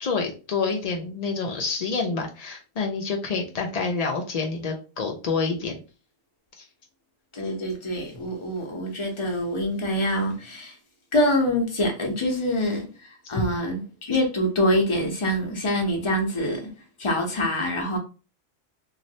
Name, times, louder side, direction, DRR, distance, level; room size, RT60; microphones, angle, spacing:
voice 1, 0.0-5.8 6.6-6.7, left 4 dB, 85° left, 0.3 m, -28 dB
voice 2, 7.3-10.8 11.1-16.7 17.0-18.0, left 1 dB, 30° left, 0.6 m, -25 dB
3.1 x 2.4 x 2.7 m
omnidirectional pair, 1.3 m